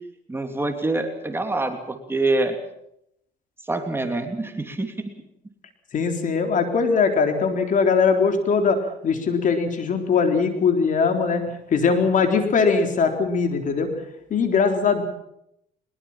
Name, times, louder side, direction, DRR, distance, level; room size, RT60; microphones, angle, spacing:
voice 1, 0.3-2.6 3.6-4.9, right 2 dB, 15° right, 5 dB, 3.0 m, -25 dB
voice 2, 5.9-11.4 11.7-13.9 14.3-15.0, left 5 dB, 50° left, 6 dB, 3.9 m, -21 dB
22.0 x 21.5 x 7.4 m, 0.77 s
cardioid pair, 110°, 17 cm